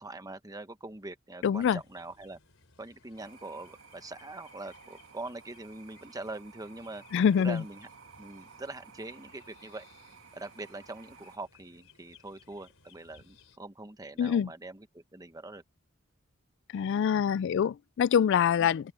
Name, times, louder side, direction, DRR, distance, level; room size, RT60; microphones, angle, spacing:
voice 1, 0.0-2.4 2.8-7.0 7.4-7.9 8.2-9.8 10.3-15.6 18.6-18.7, right 2 dB, 20° right, 1.2 m, -43 dB
voice 2, 1.4-1.8 7.1-7.6 14.2-14.5 16.7-18.9, left 8 dB, 60° left, 0.3 m, -25 dB
sound 1, 1.5-13.6, left 5 dB, 80° left, 4.0 m, -61 dB
sound 2, 3.2-11.4, right 5 dB, 80° right, 2.4 m, -55 dB
open air
head